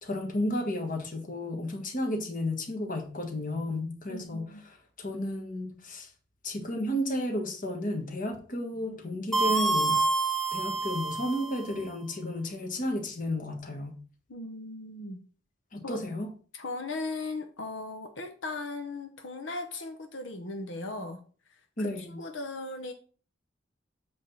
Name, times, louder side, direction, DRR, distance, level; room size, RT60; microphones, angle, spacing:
voice 1, 0.0-6.1 6.4-10.1 10.5-14.0 15.7-16.3 21.8-22.2, left 1 dB, 45° left, 3 dB, 1.5 m, -33 dB
voice 2, 4.1-4.6 14.3-15.2 15.8-16.0 16.6-21.3 21.8-22.9, left 2 dB, 85° left, 5 dB, 0.9 m, -37 dB
sound 1, 9.3-11.7, right 3 dB, ahead, 0.6 m, -27 dB
7.8 x 3.6 x 5.6 m, 0.40 s
head